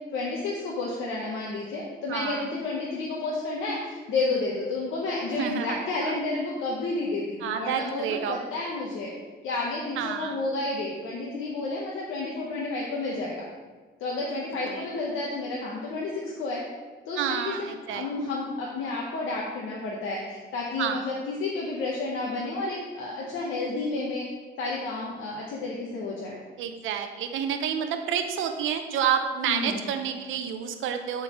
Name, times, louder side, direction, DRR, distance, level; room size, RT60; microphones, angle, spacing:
voice 1, 0.1-9.1 9.4-13.3 14.0-16.6 17.1-17.5 17.9-24.3 24.6-26.4 29.4-29.9, left 3 dB, 80° left, -3 dB, 1.0 m, -31 dB
voice 2, 2.1-2.5 5.3-6.1 7.4-8.4 10.0-10.4 14.6-14.9 17.2-18.1 20.8-21.0 26.6-31.2, right 8 dB, 80° right, 7 dB, 0.7 m, -29 dB
11.0 x 3.8 x 3.0 m, 1.4 s
cardioid pair, 90°, 20 cm